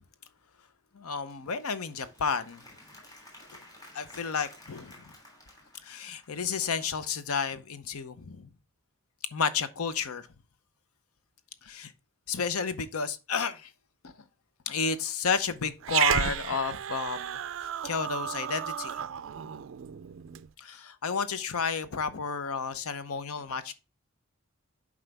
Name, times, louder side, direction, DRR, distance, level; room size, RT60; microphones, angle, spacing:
voice 1, 0.9-2.6 3.9-5.0 5.8-8.5 9.3-10.3 11.6-11.9 12.3-13.7 14.0-14.1 14.7-19.1 20.6-23.7, left 5 dB, 80° left, 0.7 m, -32 dB
Applause / Crowd, 1.0-6.4, left 1 dB, 15° left, 3.1 m, -53 dB
Growling, 15.8-20.5, right 10 dB, 60° right, 0.3 m, -32 dB
7.7 x 4.9 x 3.4 m
head